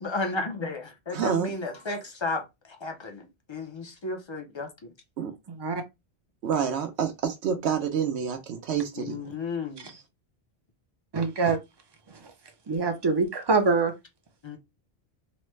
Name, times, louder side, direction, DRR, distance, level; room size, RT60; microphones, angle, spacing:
voice 1, 0.0-4.9 8.9-9.9 14.4-14.6, left 3 dB, 35° left, 0.4 m, -33 dB
voice 2, 1.1-1.5 5.2-5.3 6.4-9.2, right 7 dB, 80° right, 0.9 m, -28 dB
voice 3, 5.5-5.8 9.8-10.0 11.1-11.6 12.1-13.9, right 4 dB, 30° right, 0.5 m, -26 dB
3.1 x 2.1 x 3.1 m
omnidirectional pair, 1.1 m